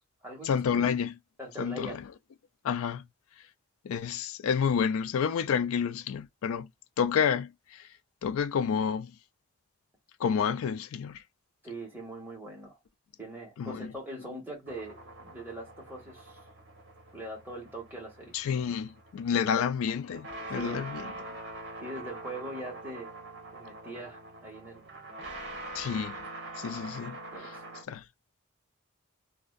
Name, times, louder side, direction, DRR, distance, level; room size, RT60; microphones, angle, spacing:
voice 1, 0.4-1.2 1.6-2.0 2.6-3.0 3.8-6.7 7.0-7.9 8.2-9.1 10.2-11.2 13.6-13.9 18.3-21.1 25.7-26.2 26.6-27.2 27.9-28.0, left 7 dB, 80° left, 0.3 m, -29 dB
voice 2, 1.4-2.0 11.6-12.8 13.2-16.4 17.1-18.3 19.5-19.7 20.5-20.9 21.8-23.1 23.5-24.8 27.3-27.5, right 1 dB, 10° right, 1.2 m, -41 dB
sound 1, 14.7-27.8, right 2 dB, 55° right, 0.9 m, -44 dB
2.5 x 2.2 x 2.2 m
head